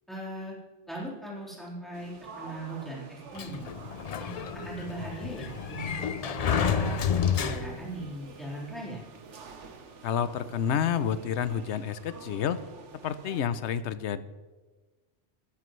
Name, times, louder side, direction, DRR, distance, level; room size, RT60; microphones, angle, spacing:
voice 1, 0.1-0.6 0.9-2.1 2.4-3.6 4.2-5.9 6.2-9.0, right 1 dB, ahead, -6 dB, 3.9 m, -39 dB
sound 1, 1.9-13.4, right 5 dB, 85° right, 1.3 m, -48 dB
Sliding door, 3.4-8.0, left 7 dB, 55° left, 0.4 m, -30 dB
voice 2, 10.0-12.6 13.0-14.2, left 8 dB, 75° left, 14 dB, 0.9 m, -29 dB
15.5 x 13.0 x 3.2 m, 1.3 s
omnidirectional pair, 1.2 m